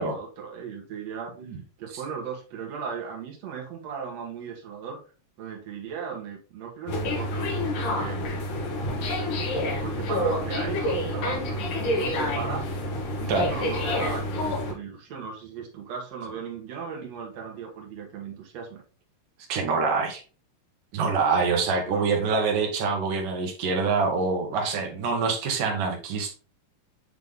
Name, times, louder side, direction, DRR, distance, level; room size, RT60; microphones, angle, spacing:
voice 1, 0.0-1.3 1.8-5.0 5.4-8.3 9.8-12.7 13.2-18.8 21.9-22.1, right 6 dB, 55° right, 0 dB, 2.6 m, -37 dB
sound 1, 6.9-14.7, left 1 dB, 65° left, 2.8 m, -28 dB
voice 2, 19.5-20.2 20.9-26.3, right 4 dB, 70° right, 3 dB, 2.7 m, -25 dB
8.1 x 3.4 x 3.6 m, 0.36 s
omnidirectional pair, 4.0 m